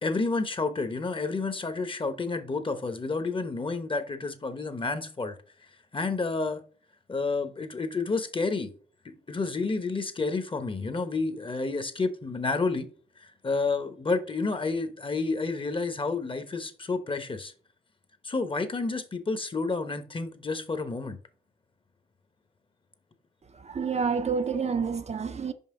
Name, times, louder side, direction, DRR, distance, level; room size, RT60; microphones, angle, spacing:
voice 1, 0.0-5.4 5.9-6.6 7.1-8.7 9.0-12.9 13.4-17.5 18.2-21.2, left 3 dB, 30° left, 0.9 m, -30 dB
voice 2, 23.6-25.5, right 5 dB, 40° right, 0.6 m, -28 dB
5.5 x 5.2 x 3.8 m
cardioid pair, 70°, 17 cm